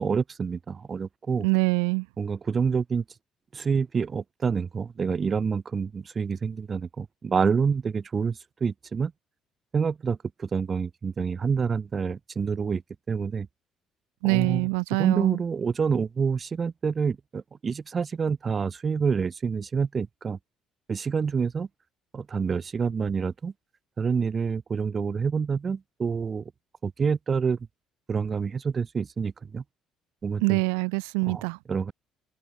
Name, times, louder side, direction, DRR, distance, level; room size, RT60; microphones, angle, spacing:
voice 1, 0.0-1.5 2.2-3.0 3.5-9.1 9.7-12.8 13.1-13.5 14.2-14.7 15.0-20.4 20.9-21.7 22.1-23.5 24.0-26.5 26.8-27.6 28.1-29.6 30.2-30.6 31.3-31.4 31.7-31.9, right 5 dB, 40° right, 2.8 m, -27 dB
voice 2, 1.4-2.1 14.2-15.4 30.4-31.6, right 40 dB or more, 80° right, 2.9 m, -24 dB
hypercardioid pair, 55°, 0 cm